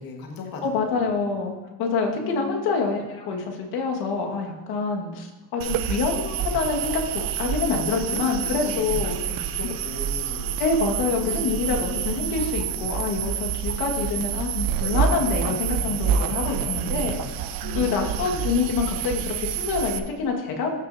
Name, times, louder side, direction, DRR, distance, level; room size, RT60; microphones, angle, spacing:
voice 1, 0.0-1.2 1.8-2.6 7.7-10.5 11.2-12.9 16.0-16.7 17.6-18.1, left 3 dB, 60° left, 1 dB, 1.7 m, -38 dB
voice 2, 0.6-1.5 1.8-9.2 10.6-17.2 17.7-20.8, left 4 dB, 75° left, 1 dB, 1.7 m, -26 dB
sound 1, 5.6-20.0, right 8 dB, 60° right, 0.6 m, -28 dB
14.0 x 6.1 x 2.7 m, 1.2 s
supercardioid pair, 80°, 38 cm